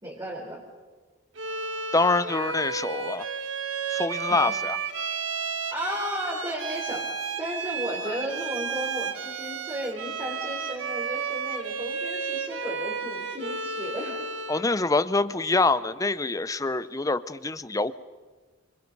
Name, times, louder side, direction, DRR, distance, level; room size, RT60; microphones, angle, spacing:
voice 1, 0.0-0.6 4.4-4.5 5.7-7.1 7.4-14.2, equal, 20° right, -4 dB, 4.4 m, -34 dB
Bowed string instrument, 1.4-14.7, right 5 dB, 70° right, 1.7 m, -32 dB
voice 2, 1.9-3.3 3.9-4.8 14.5-17.9, left 3 dB, 15° left, 15 dB, 0.7 m, -25 dB
29.5 x 25.5 x 5.4 m, 1.4 s
head